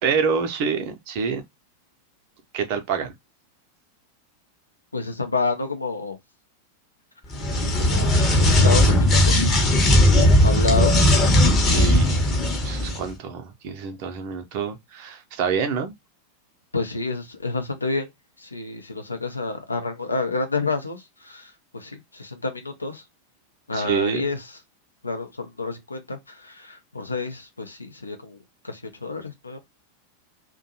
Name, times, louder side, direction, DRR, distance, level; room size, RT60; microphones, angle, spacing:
voice 1, 0.0-1.4 2.5-3.1 11.4-12.2 12.6-15.9 23.7-24.3, right 6 dB, 45° right, 0.6 m, -27 dB
voice 2, 4.9-6.2 7.7-9.4 10.4-11.0 16.7-18.1 18.4-23.0 23.7-24.6 25.0-28.4 28.6-29.6, left 3 dB, 80° left, 0.5 m, -29 dB
sound 1, 7.3-13.0, left 1 dB, 25° left, 0.8 m, -17 dB
2.5 x 2.2 x 2.7 m
figure-of-eight pair, 90°, 0 cm